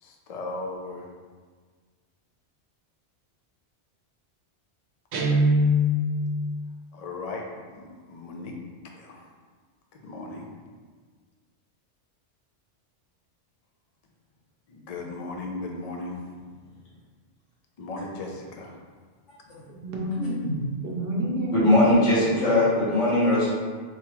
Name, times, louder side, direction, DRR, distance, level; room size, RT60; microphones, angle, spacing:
voice 1, 0.0-1.1 6.9-8.6 8.9-9.3 9.9-10.5 14.7-16.3 17.8-18.8, left 2 dB, 65° left, 1 dB, 0.3 m, -37 dB
Guitar, 5.1-6.3, left 1 dB, 85° right, 0.9 m, -21 dB
voice 2, 19.7-22.0, right 1 dB, 55° right, -2 dB, 0.9 m, -29 dB
voice 3, 21.5-23.5, left 1 dB, 80° left, -9 dB, 1.5 m, -20 dB
4.4 x 2.3 x 3.0 m, 1.5 s
omnidirectional pair, 1.2 m